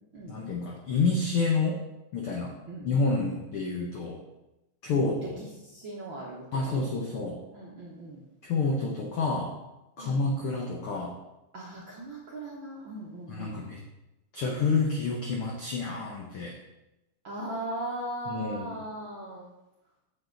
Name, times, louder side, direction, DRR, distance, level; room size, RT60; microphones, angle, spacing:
voice 1, 0.3-1.8 2.1-2.5 2.8-4.2 4.8-5.4 6.5-7.4 8.4-9.6 10.0-11.2 13.3-13.8 14.3-16.6 18.3-18.7, left 3 dB, 80° left, 0 dB, 1.2 m, -29 dB
voice 2, 4.9-6.9 7.5-8.2 10.0-10.2 11.5-13.6 17.2-19.5, right 1 dB, 65° right, -4 dB, 1.2 m, -39 dB
8.0 x 7.1 x 3.8 m, 0.96 s
omnidirectional pair, 3.7 m